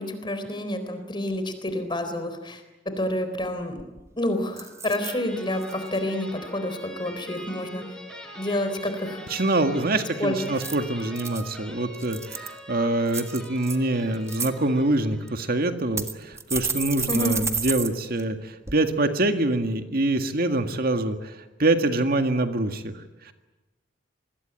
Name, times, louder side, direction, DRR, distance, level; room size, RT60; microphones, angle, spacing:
voice 1, 0.0-2.6 2.9-3.8 4.2-7.8 8.4-9.2 10.2-10.4 17.1-17.4, left 1 dB, 25° left, 9 dB, 4.0 m, -28 dB
sound 1, 3.4-3.5 3.8-4.1 4.6-5.1 5.6-6.0 10.4-11.4 11.9-12.6 13.1-13.8 14.1-14.5 15.3-15.4 16.0-17.9 18.2-18.3 18.7-18.8, right 5 dB, 15° right, 1.6 m, -31 dB
sound 2, 4.9-15.6, equal, 5° left, 5.0 m, -42 dB
voice 2, 9.3-22.9 23.3-23.4, right 2 dB, 50° right, 7 dB, 1.8 m, -25 dB
27.5 x 21.0 x 9.1 m, 1.1 s
head